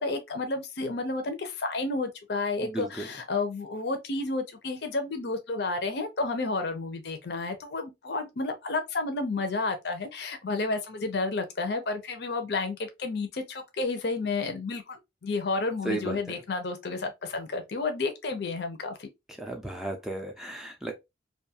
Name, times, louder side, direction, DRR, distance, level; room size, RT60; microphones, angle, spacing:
voice 1, 0.0-19.1, left 3 dB, 60° left, 0.5 m, -31 dB
voice 2, 2.6-3.1 15.8-16.2 19.3-20.9, right 2 dB, ahead, 0.3 m, -34 dB
2.5 x 2.3 x 2.7 m
head